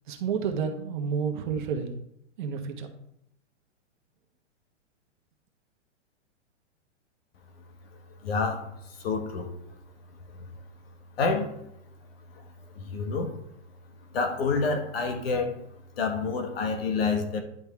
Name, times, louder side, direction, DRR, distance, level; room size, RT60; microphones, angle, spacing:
voice 1, 0.1-2.0 2.4-2.9, right 6 dB, 45° right, 4 dB, 1.2 m, -30 dB
voice 2, 8.2-8.7 9.0-9.5 11.2-11.5 12.8-13.3 14.1-15.5 16.0-17.4, left 4 dB, 55° left, 5 dB, 1.6 m, -27 dB
10.5 x 5.3 x 3.6 m, 0.78 s
hypercardioid pair, 165°, 36 cm